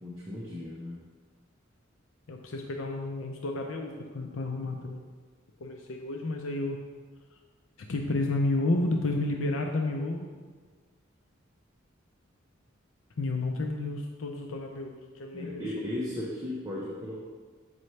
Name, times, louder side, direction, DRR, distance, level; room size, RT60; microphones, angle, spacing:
voice 1, 0.0-1.0 15.3-17.2, left 1 dB, 20° right, -6 dB, 0.9 m, -36 dB
voice 2, 2.3-5.0 5.6-6.8 7.9-10.3 13.2-15.6, left 2 dB, 90° left, 2 dB, 0.6 m, -31 dB
7.8 x 5.5 x 3.2 m, 1.5 s
head